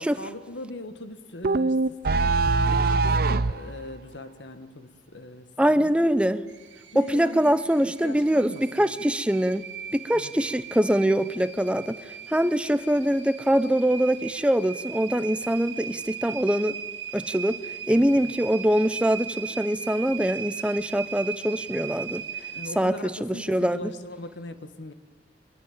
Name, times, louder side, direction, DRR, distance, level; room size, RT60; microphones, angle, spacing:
voice 1, 0.0-5.9 6.9-7.6 7.8-8.9 10.1-10.3 17.9-18.3 22.5-24.9, left 1 dB, 75° left, 9 dB, 1.8 m, -40 dB
sound 1, 1.4-3.6, right 3 dB, 55° right, 0.7 m, -22 dB
voice 2, 5.6-6.4 6.9-9.6 9.9-16.7 17.1-17.6 17.9-22.2 22.8-23.9, equal, 5° right, 13 dB, 0.8 m, -23 dB
sound 2, 6.5-22.7, right 8 dB, 90° right, 2.4 m, -38 dB
23.0 x 21.0 x 9.0 m, 1.4 s
head